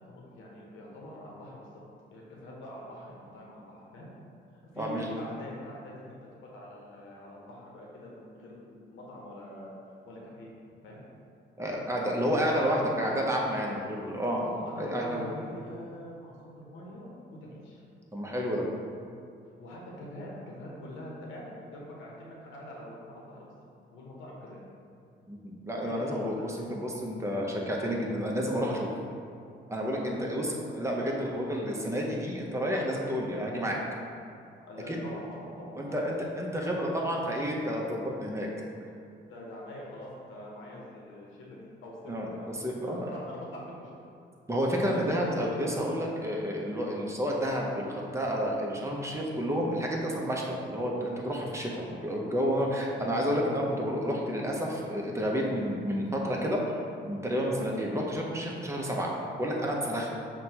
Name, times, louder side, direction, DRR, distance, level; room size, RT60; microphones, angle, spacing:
voice 1, 0.0-1.7 2.1-4.1 4.7-6.1 6.5-9.7 10.1-10.5 10.8-11.0 12.2-12.8 14.4-17.8 19.6-23.5 23.9-24.6 25.8-26.6 30.0-30.4 34.7-36.3 39.3-42.5 42.8-44.0 51.7-52.1, left 1 dB, 80° left, -3 dB, 0.8 m, -44 dB
voice 2, 4.8-5.1 11.6-14.4 14.8-15.3 18.1-18.7 25.3-28.9 29.7-33.8 34.9-35.0 35.7-38.5 42.1-42.3 42.6-43.1 44.5-56.8 57.1-59.1 59.4-60.1, equal, 15° right, -2 dB, 0.6 m, -30 dB
5.7 x 2.2 x 2.8 m, 2.4 s
cardioid pair, 90°, 20 cm